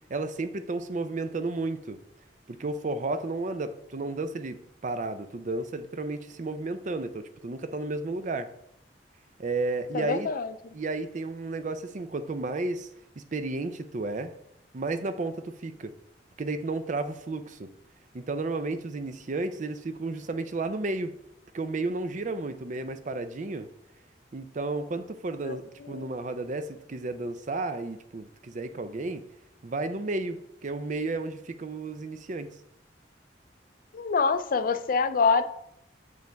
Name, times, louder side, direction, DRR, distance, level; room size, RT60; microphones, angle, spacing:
voice 1, 0.0-2.0 2.5-8.5 9.4-10.3 10.7-12.9 13.2-14.3 14.7-15.9 16.4-17.7 18.1-21.1 21.5-23.7 24.3-29.2 29.6-32.5, right 3 dB, 45° right, 10 dB, 0.5 m, -32 dB
voice 2, 9.9-10.5 25.4-25.6 25.9-26.1 33.9-35.4, left 5 dB, 50° left, 11 dB, 0.4 m, -25 dB
7.7 x 5.3 x 3.4 m, 0.76 s
head